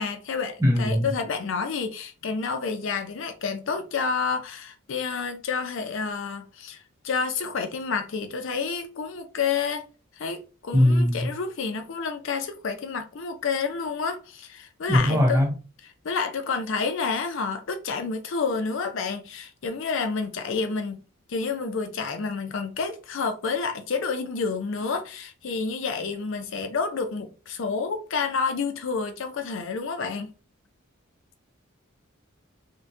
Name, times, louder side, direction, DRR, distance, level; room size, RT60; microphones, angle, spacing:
voice 1, 0.0-9.9 10.2-15.4 15.8-21.0 21.3-30.3, left 5 dB, 60° left, 0.5 m, -29 dB
voice 2, 0.6-1.1 10.7-11.3 14.9-15.5, left 1 dB, 15° right, 0.7 m, -20 dB
2.7 x 2.1 x 3.6 m
head